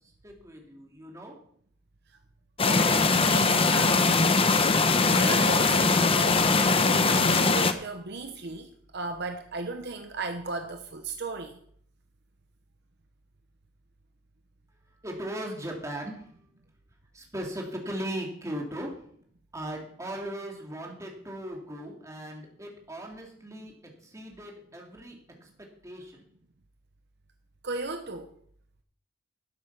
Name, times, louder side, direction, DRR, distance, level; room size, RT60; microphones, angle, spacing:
voice 1, 0.2-1.3 15.0-16.3 17.1-18.9 19.5-23.7 24.0-25.2 25.4-25.5 25.8-26.3, right 1 dB, 15° right, 0 dB, 2.8 m, -38 dB
sound 1, 2.6-7.7, left 3 dB, 30° left, 0.9 m, -21 dB
voice 2, 2.7-11.6 27.6-28.3, right 3 dB, 60° right, 6 dB, 1.0 m, -36 dB
12.5 x 8.1 x 5.9 m, 0.63 s
head